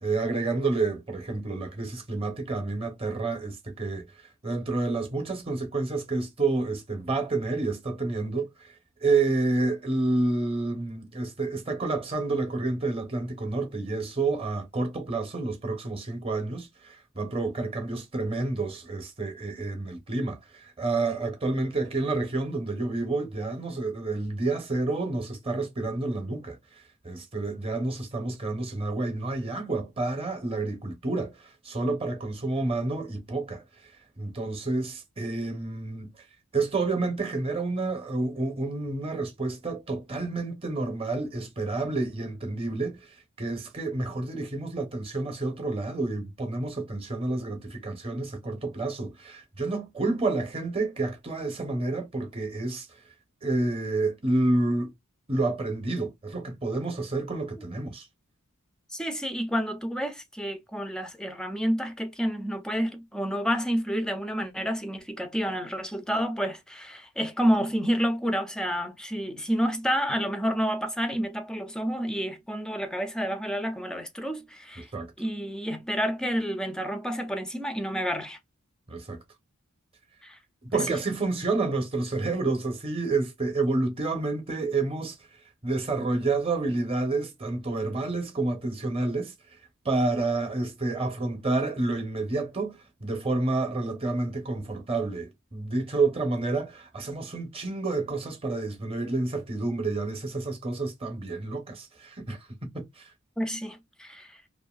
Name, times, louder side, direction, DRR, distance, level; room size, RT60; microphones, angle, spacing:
voice 1, 0.0-4.1 4.4-8.7 9.0-26.6 27.0-33.6 34.2-36.1 36.5-43.1 43.4-52.9 53.4-54.9 55.3-58.1 74.8-75.1 78.9-79.2 80.7-85.2 85.6-89.3 89.8-103.1, right 3 dB, 25° right, 0.7 m, -29 dB
voice 2, 58.9-74.9 75.2-78.4 80.2-80.4 80.7-81.0 103.4-104.4, equal, 5° left, 0.4 m, -29 dB
2.5 x 2.5 x 2.3 m
head